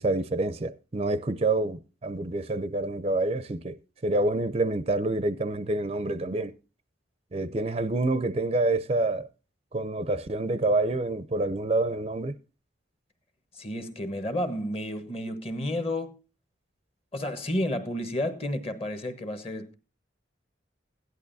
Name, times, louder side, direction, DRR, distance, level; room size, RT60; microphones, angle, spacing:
voice 1, 0.0-3.8 4.0-6.5 7.3-9.3 9.7-12.3, right 2 dB, 30° right, 0.5 m, -27 dB
voice 2, 13.5-16.2 17.1-19.7, left 1 dB, 30° left, 1.2 m, -31 dB
16.0 x 11.0 x 2.7 m
head